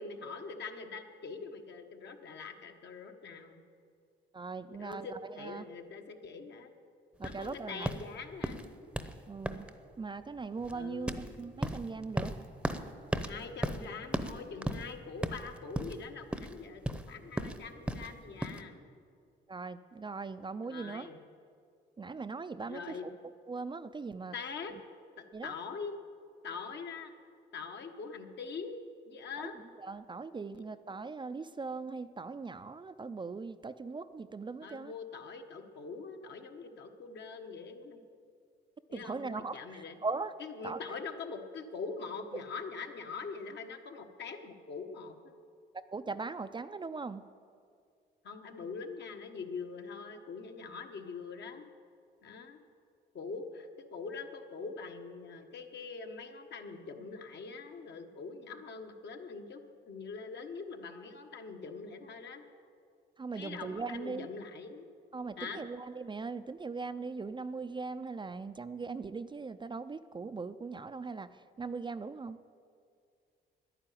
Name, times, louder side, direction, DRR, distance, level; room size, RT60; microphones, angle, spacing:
voice 1, 0.0-3.6 4.7-6.7 7.2-8.6 10.7-11.2 13.2-18.8 20.7-21.2 22.6-23.1 24.3-24.7 25.2-26.0 26.4-27.1 27.5-29.5 30.5-30.6 34.6-38.0 38.9-40.0 40.4-45.3 48.2-51.7 52.2-52.6 53.1-62.4 63.3-64.9 65.4-65.6, left 4 dB, 60° left, 4 dB, 1.4 m, -43 dB
voice 2, 4.3-5.1 5.4-5.6 7.2-7.9 9.3-9.7 10.0-12.3 19.5-21.1 22.0-23.0 23.5-24.4 25.3-25.5 29.4-34.9 38.9-40.3 40.6-40.8 45.7-47.2 63.2-64.3 65.1-72.4, right 4 dB, 25° right, 11 dB, 0.4 m, -40 dB
sound 1, 7.2-18.6, right 1 dB, 5° right, 0.8 m, -37 dB
10.5 x 9.9 x 9.2 m, 2.2 s
cardioid pair, 90°, 20 cm